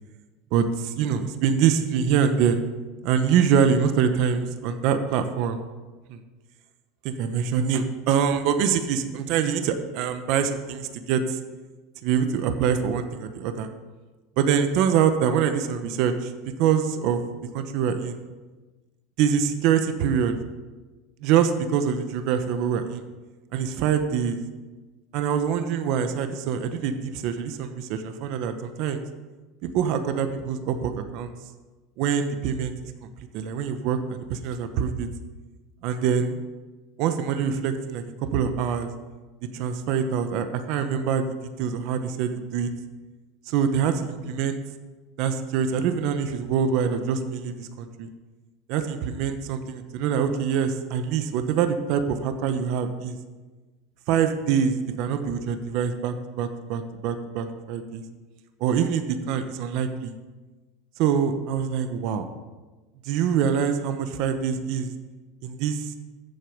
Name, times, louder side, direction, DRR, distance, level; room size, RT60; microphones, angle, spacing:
voice 1, 0.5-2.6 3.0-5.6 6.1-6.2 7.0-11.4 12.0-13.7 14.4-16.3 16.6-17.2 17.5-18.2 19.2-20.3 21.2-23.0 23.5-24.4 25.1-29.0 29.6-31.3 32.0-32.7 33.3-35.1 35.8-36.4 37.0-38.0 38.3-38.9 39.5-41.3 41.6-42.7 43.5-44.6 45.2-48.1 48.7-53.2 54.1-58.0 58.6-60.1 61.0-62.3 63.0-64.9 65.4-65.9, right 7 dB, 55° right, 8 dB, 1.0 m, -24 dB
14.0 x 7.8 x 5.2 m, 1.2 s
supercardioid pair, 155°, 0 cm